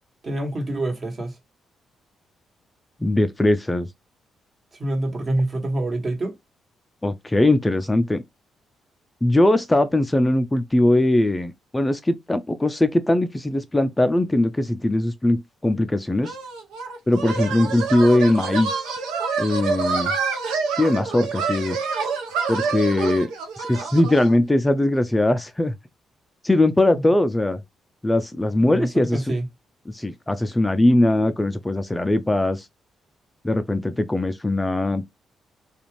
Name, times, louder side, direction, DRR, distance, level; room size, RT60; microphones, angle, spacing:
voice 1, 0.2-1.4 4.8-6.4 28.6-29.4, right 1 dB, 40° right, 1.3 m, -26 dB
voice 2, 3.0-3.9 7.0-8.2 9.2-16.4 17.1-18.9 19.4-20.1 20.7-21.8 22.5-23.3 23.6-25.8 26.4-27.6 28.0-29.3 29.9-32.7 33.4-35.0, left 1 dB, 15° left, 0.4 m, -20 dB
sound 1, 16.2-24.3, right 5 dB, 90° right, 0.6 m, -27 dB
2.5 x 2.3 x 3.1 m
supercardioid pair, 55°, 0 cm